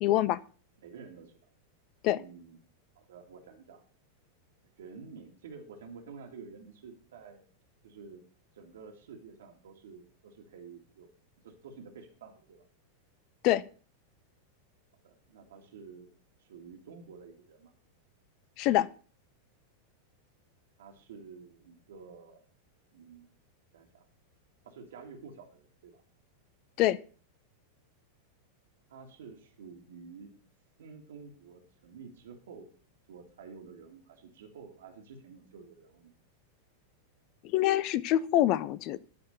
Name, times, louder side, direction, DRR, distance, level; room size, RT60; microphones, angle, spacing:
voice 1, 0.0-0.4 2.0-2.2 13.4-13.6 18.6-18.9 26.8-27.0 37.5-39.0, left 14 dB, 40° left, 20 dB, 0.5 m, -25 dB
voice 2, 0.8-1.3 2.1-2.6 3.0-3.8 4.8-7.4 7.8-8.2 8.5-11.1 11.4-12.7 15.0-16.1 16.4-17.7 20.8-22.4 22.9-23.3 23.7-24.1 24.7-26.0 28.9-30.3 30.8-32.7 33.1-36.1, right 5 dB, 60° right, 2 dB, 2.0 m, -50 dB
12.5 x 4.3 x 6.6 m, 0.41 s
figure-of-eight pair, 90°, 0 cm